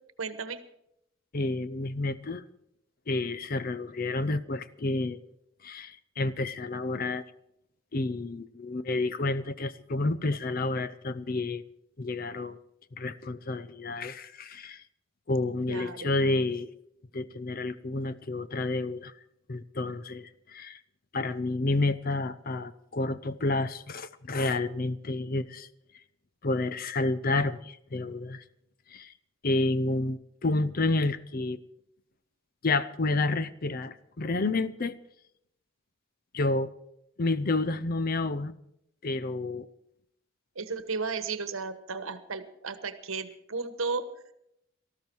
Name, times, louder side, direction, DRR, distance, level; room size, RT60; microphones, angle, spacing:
voice 1, 0.2-0.6 15.7-16.1 40.5-44.1, right 4 dB, 80° right, 11 dB, 1.2 m, -34 dB
voice 2, 1.3-2.4 3.1-5.2 5.6-7.2 7.9-11.6 12.0-12.6 13.0-14.8 15.3-16.7 17.1-19.1 19.5-20.8 21.1-25.7 26.4-28.4 28.9-29.1 29.4-31.6 32.6-35.0 36.3-36.7 37.2-38.5 39.0-39.7, left 2 dB, 45° left, 15 dB, 0.6 m, -30 dB
18.5 x 13.5 x 4.6 m, 0.78 s
head